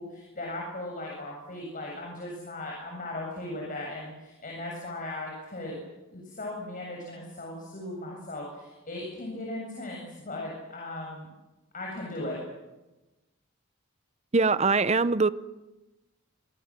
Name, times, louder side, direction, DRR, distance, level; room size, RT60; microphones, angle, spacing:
voice 1, 0.0-5.7 6.1-11.3 11.7-12.4, left 1 dB, 40° left, -1 dB, 7.4 m, -37 dB
voice 2, 14.3-15.3, right 4 dB, 30° right, 15 dB, 0.8 m, -22 dB
27.0 x 23.5 x 7.6 m, 1.1 s
head